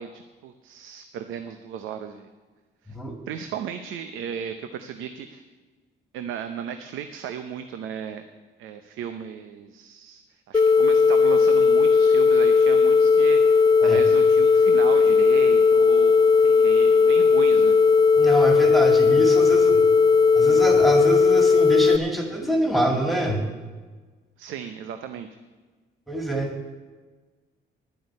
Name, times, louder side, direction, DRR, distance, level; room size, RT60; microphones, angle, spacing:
voice 1, 0.0-2.3 2.8-3.0 3.3-5.4 6.1-8.2 8.6-10.2 10.5-17.8 24.4-25.3, right 8 dB, 90° right, 8 dB, 0.7 m, -35 dB
sound 1, 10.5-22.0, left 5 dB, 20° left, 0.5 m, -17 dB
voice 2, 18.2-19.8 20.3-23.4 26.1-26.7, right 1 dB, ahead, 2 dB, 2.2 m, -25 dB
10.0 x 7.8 x 9.8 m, 1.3 s
cardioid pair, 90°, 20 cm